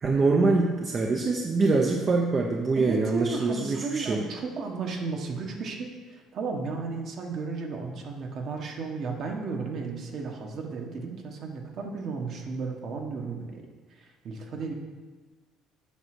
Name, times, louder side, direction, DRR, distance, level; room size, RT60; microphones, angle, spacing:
voice 1, 0.0-4.2, right 3 dB, 30° right, 1 dB, 0.7 m, -24 dB
voice 2, 2.7-13.6 13.9-14.7, right 4 dB, 50° right, 2 dB, 1.5 m, -34 dB
8.2 x 6.2 x 6.2 m, 1.3 s
cardioid pair, 135°, 0 cm